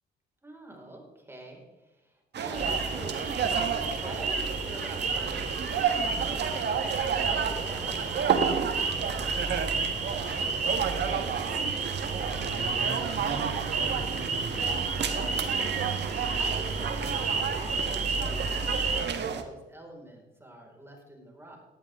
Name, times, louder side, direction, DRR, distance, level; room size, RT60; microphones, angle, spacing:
voice 1, 0.4-9.6 10.0-13.8 14.1-21.6, right 1 dB, 10° right, 0 dB, 4.8 m, -47 dB
sound 1, 2.3-19.4, right 7 dB, 60° right, 1.5 m, -31 dB
sound 2, 2.5-19.0, right 4 dB, 40° right, 2.2 m, -32 dB
18.0 x 11.0 x 3.6 m, 1.1 s
cardioid pair, 90°, 20 cm